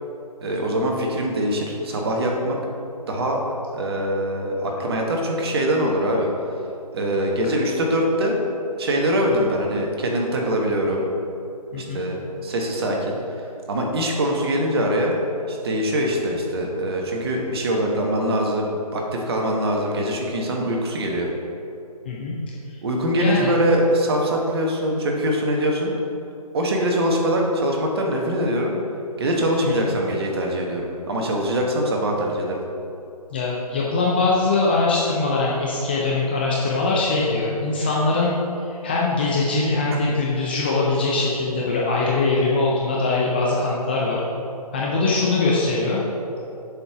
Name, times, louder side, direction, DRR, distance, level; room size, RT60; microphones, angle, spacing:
voice 1, 0.4-2.6 3.1-3.4 3.7-6.3 6.9-8.4 8.8-11.1 11.7-12.2 12.4-13.2 13.7-15.1 15.5-21.3 22.8-25.9 26.5-28.7 29.2-32.6 39.9-40.1, equal, 40° right, 0 dB, 1.1 m, -23 dB
voice 2, 23.2-23.5 29.6-29.9 33.3-38.3 38.7-44.2 44.7-46.0, left 3 dB, 15° left, -5 dB, 0.4 m, -22 dB
7.0 x 4.4 x 4.7 m, 2.6 s
figure-of-eight pair, 145°, 20 cm